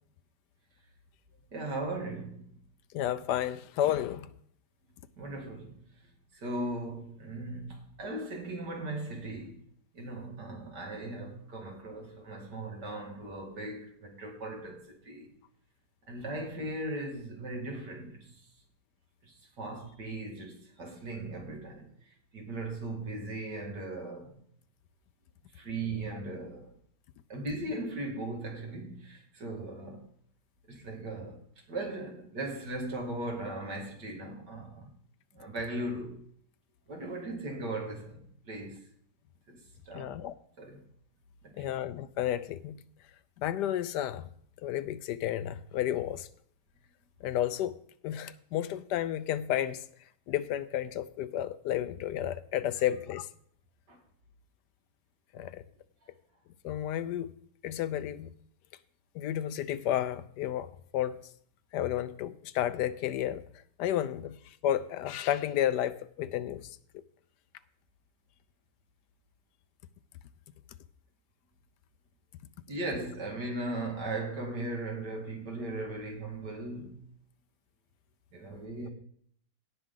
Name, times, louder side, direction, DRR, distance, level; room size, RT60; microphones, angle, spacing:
voice 1, 1.5-2.5 5.2-5.8 6.3-9.6 9.9-15.3 16.1-18.3 19.6-21.8 22.3-24.4 25.5-26.7 27.3-30.1 30.7-31.4 31.7-34.9 35.3-36.3 36.9-38.8 39.5-40.1 40.6-40.8 41.4-41.7 53.9-54.0 72.7-77.0 78.3-78.9, right 2 dB, 85° right, 2.7 m, -38 dB
voice 2, 2.9-4.3 39.9-40.3 41.6-42.8 43.4-44.3 44.6-46.3 47.2-47.8 48.0-49.8 50.3-53.3 55.3-55.6 56.6-57.3 57.6-58.3 59.1-61.2 61.7-63.4 63.8-64.4 64.6-67.0, left 11 dB, 85° left, 1.2 m, -32 dB
17.5 x 5.9 x 3.9 m
omnidirectional pair, 1.8 m